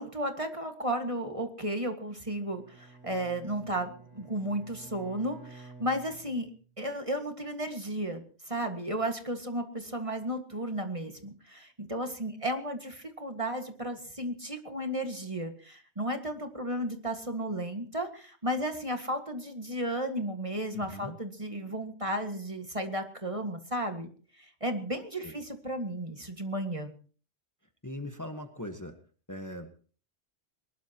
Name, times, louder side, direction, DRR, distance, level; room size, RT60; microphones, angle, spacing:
voice 1, 0.0-6.5 6.8-24.1 24.4-26.9, right 1 dB, 25° right, 5 dB, 1.9 m, -34 dB
Bowed string instrument, 2.4-6.8, right 4 dB, 50° right, 6.2 m, -51 dB
voice 2, 20.7-21.2 25.2-25.3 27.8-28.9 29.3-29.7, left 1 dB, 15° left, 6 dB, 1.4 m, -40 dB
22.5 x 20.0 x 3.0 m, 0.42 s
omnidirectional pair, 1.2 m